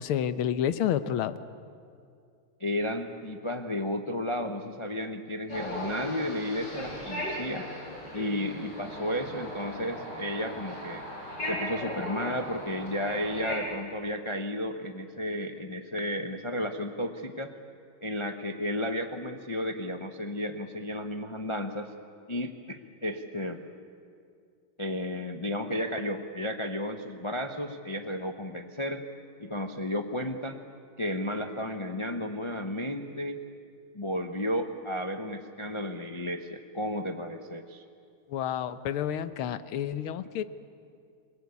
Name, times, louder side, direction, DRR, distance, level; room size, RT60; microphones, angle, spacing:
voice 1, 0.0-1.4 38.3-40.4, left 10 dB, 90° left, 13 dB, 1.7 m, -29 dB
voice 2, 2.6-7.7 8.1-11.0 11.5-17.5 18.0-21.9 22.3-23.6 24.8-29.0 29.4-30.6 31.0-33.4 33.9-37.8, left 1 dB, 25° left, 5 dB, 0.6 m, -33 dB
sound 1, 5.5-13.6, left 1 dB, 55° left, 7.6 m, -37 dB
29.0 x 20.0 x 8.5 m, 2.3 s
omnidirectional pair, 2.3 m